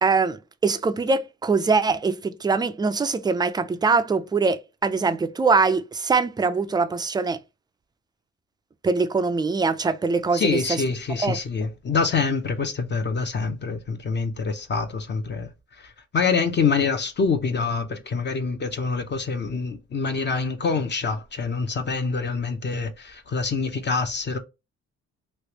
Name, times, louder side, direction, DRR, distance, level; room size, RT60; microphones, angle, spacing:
voice 1, 0.0-7.4 8.8-10.8 11.2-11.4, right 4 dB, 15° right, 0.3 m, -23 dB
voice 2, 10.3-15.5 15.8-24.4, left 4 dB, 35° left, 0.6 m, -26 dB
3.2 x 2.5 x 2.8 m
cardioid pair, 90°, 30 cm